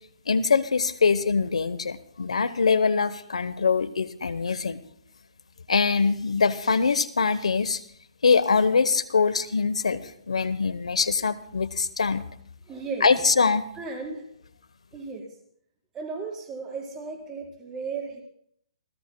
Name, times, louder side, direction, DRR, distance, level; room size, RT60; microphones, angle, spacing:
voice 1, 0.3-4.8 5.7-7.8 8.2-12.3 13.0-13.7, left 5 dB, 90° left, 16 dB, 0.9 m, -23 dB
voice 2, 12.7-13.1 13.7-14.3 14.9-15.3 15.9-18.2, right 4 dB, 15° right, -1 dB, 4.4 m, -35 dB
27.5 x 16.5 x 2.2 m, 0.67 s
hypercardioid pair, 145°, 3 cm